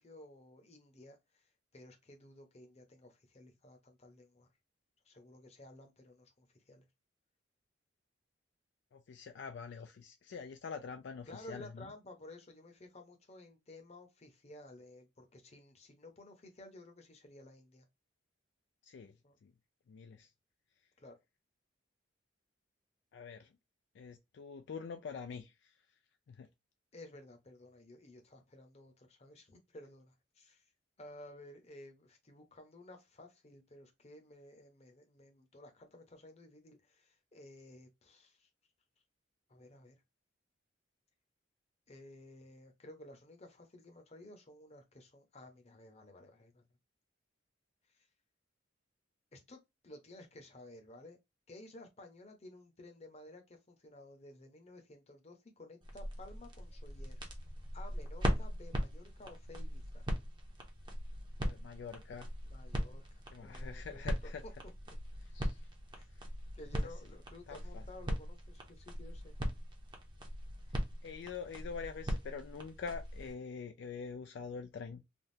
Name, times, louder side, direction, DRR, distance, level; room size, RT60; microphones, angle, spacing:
voice 1, 0.0-4.5 5.0-6.8 11.3-17.8 19.2-19.4 21.0-21.1 26.9-30.6 31.0-38.5 39.5-40.0 41.9-46.6 47.9-48.1 49.3-51.2 51.5-57.2 57.7-60.0 62.4-64.5 64.9-65.0 65.9-66.0 66.5-69.3, left 1 dB, 35° left, 0.8 m, -54 dB
voice 2, 8.9-11.9 18.8-19.1 19.4-19.5 19.9-20.3 23.1-23.5 24.0-25.7 26.3-26.5 61.4-62.3 63.3-64.4 65.3-65.6 67.5-67.8 71.0-75.0, left 5 dB, 65° left, 0.3 m, -45 dB
sound 1, 55.8-73.3, equal, 25° right, 0.7 m, -40 dB
3.5 x 2.3 x 2.7 m
head